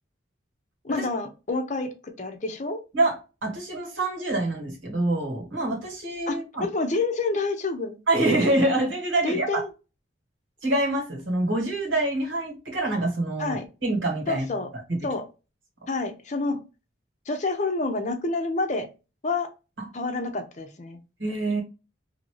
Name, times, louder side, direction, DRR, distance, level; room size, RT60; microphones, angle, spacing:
voice 1, 0.8-1.9 2.2-2.8 6.3-8.0 9.2-9.7 13.4-13.6 14.3-14.7 15.0-15.2 15.9-16.6 17.3-18.9 19.2-19.5 19.9-21.0, left 3 dB, 40° left, 0.6 m, -28 dB
voice 2, 2.9-6.6 8.1-9.6 10.6-14.4 14.9-15.0 19.8-19.9 21.2-21.6, right 2 dB, 80° right, 1.7 m, -26 dB
2.8 x 2.7 x 3.1 m
head